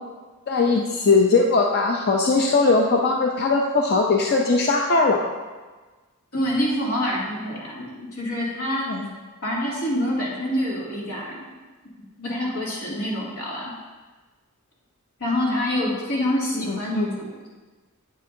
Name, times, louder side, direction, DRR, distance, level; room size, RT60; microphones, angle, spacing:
voice 1, 0.5-5.2 8.9-9.0 16.6-17.1, left 3 dB, 50° left, 1 dB, 0.5 m, -20 dB
voice 2, 6.3-8.9 9.4-11.4 12.2-13.7 15.2-17.5, left 1 dB, 85° left, -5 dB, 2.3 m, -26 dB
8.4 x 8.3 x 2.6 m, 1.3 s
head